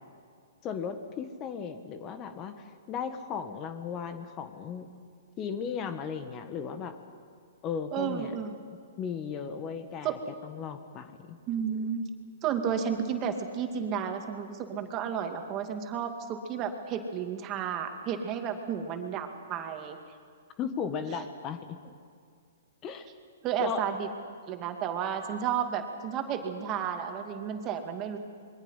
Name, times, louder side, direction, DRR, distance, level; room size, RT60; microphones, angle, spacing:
voice 1, 0.6-2.5 2.9-4.9 5.4-6.9 7.6-8.3 9.0-11.4 20.6-21.8 22.8-23.1 23.6-23.8, left 7 dB, 30° left, 8 dB, 1.7 m, -36 dB
voice 2, 7.9-8.6 10.0-10.1 11.5-12.0 12.4-20.0 23.4-24.1 24.5-28.2, right 7 dB, 30° right, 5 dB, 2.4 m, -32 dB
27.0 x 22.5 x 5.8 m, 2.2 s
hypercardioid pair, 130°, 0 cm